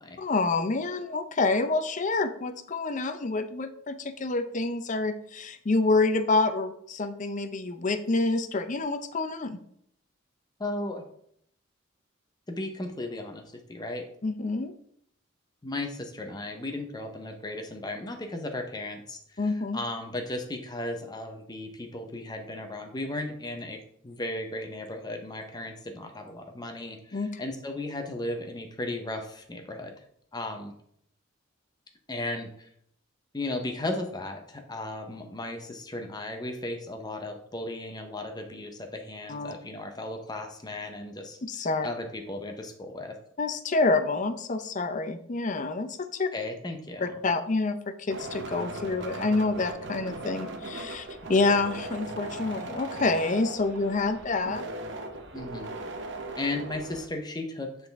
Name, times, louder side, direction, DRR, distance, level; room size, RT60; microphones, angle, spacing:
voice 1, 0.2-9.6 14.2-14.7 19.4-19.8 27.1-27.3 39.3-39.5 41.4-41.9 43.4-46.3 47.0-54.7, left 3 dB, 40° left, 9 dB, 0.5 m, -27 dB
voice 2, 10.6-11.1 12.5-13.4 13.7-14.1 15.6-19.2 19.7-23.8 24.0-29.9 30.3-30.7 32.1-32.7 33.3-41.4 41.8-43.1 46.3-47.2 55.3-55.7 56.4-57.7, left 2 dB, 20° left, 4 dB, 0.8 m, -35 dB
sound 1, 48.1-57.1, right 2 dB, 60° right, 0.8 m, -38 dB
9.3 x 4.0 x 3.5 m, 0.69 s
head